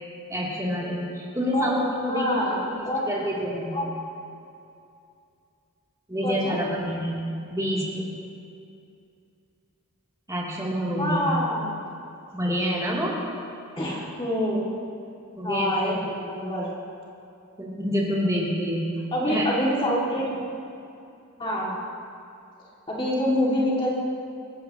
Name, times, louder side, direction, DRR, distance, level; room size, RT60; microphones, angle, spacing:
voice 1, 0.3-2.3 2.8-3.7 6.1-7.2 7.5-8.1 10.3-11.3 12.3-13.2 15.4-16.1 17.6-18.9 19.2-19.5, equal, 15° right, -6 dB, 3.0 m, -27 dB
voice 2, 2.1-3.1 3.7-3.9 6.2-6.6 11.0-11.8 13.8-14.6 15.4-16.7 19.1-20.4 21.4-21.8 22.9-24.0, equal, 25° left, -5 dB, 2.4 m, -26 dB
27.0 x 14.5 x 3.0 m, 2.6 s
head